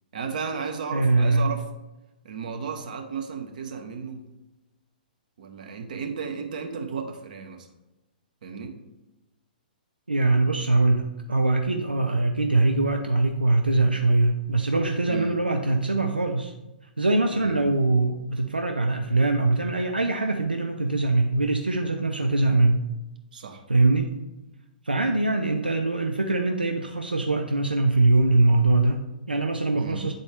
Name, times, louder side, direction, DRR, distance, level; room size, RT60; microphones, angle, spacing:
voice 1, 0.1-1.7 2.2-4.2 5.4-7.7 8.4-8.7 15.1-15.4 17.3-17.6 23.3-23.6 29.8-30.1, right 5 dB, 60° right, 4 dB, 1.0 m, -34 dB
voice 2, 0.9-1.5 10.1-16.5 17.0-22.8 23.7-24.1 24.8-30.1, right 2 dB, 90° right, 4 dB, 0.5 m, -22 dB
8.9 x 4.1 x 3.3 m, 1.0 s
figure-of-eight pair, 115°, 5 cm